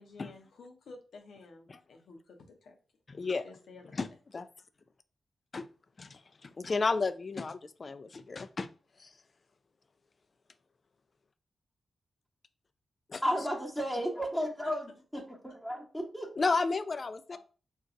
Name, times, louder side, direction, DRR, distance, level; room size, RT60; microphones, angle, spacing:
voice 1, 0.0-2.7 3.4-3.9 17.3-17.4, left 3 dB, 80° left, 3 dB, 0.7 m, -52 dB
voice 2, 3.1-3.5 3.9-4.1 4.3-4.5 5.5-5.7 6.0-8.7 9.0-9.1 13.1-13.2 16.4-17.4, left 4 dB, 50° left, 11 dB, 0.3 m, -32 dB
voice 3, 13.2-16.3, equal, ahead, -2 dB, 1.0 m, -33 dB
2.6 x 2.3 x 3.7 m, 0.37 s
supercardioid pair, 45°, 0 cm